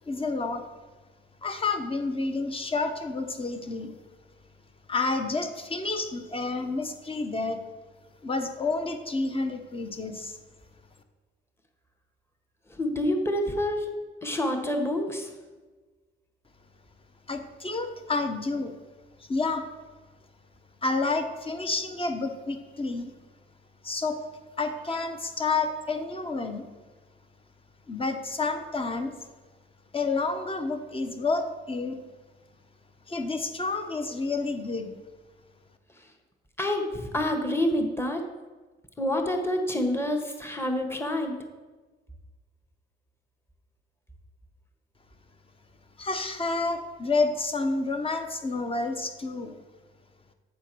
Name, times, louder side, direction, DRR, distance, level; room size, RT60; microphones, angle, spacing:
voice 1, 0.1-0.7 1.4-3.9 4.9-7.6 8.2-10.4 17.3-18.7 19.2-19.7 20.8-23.1 23.8-24.2 24.6-26.7 27.9-29.1 29.9-32.0 33.1-34.9 46.0-49.5, left 3 dB, 30° left, 7 dB, 1.0 m, -29 dB
voice 2, 12.8-13.9 14.2-15.3 36.6-38.2 39.0-41.3, left 1 dB, 10° left, 4 dB, 1.3 m, -27 dB
8.2 x 4.6 x 6.2 m, 1.3 s
cardioid pair, 90°, 20 cm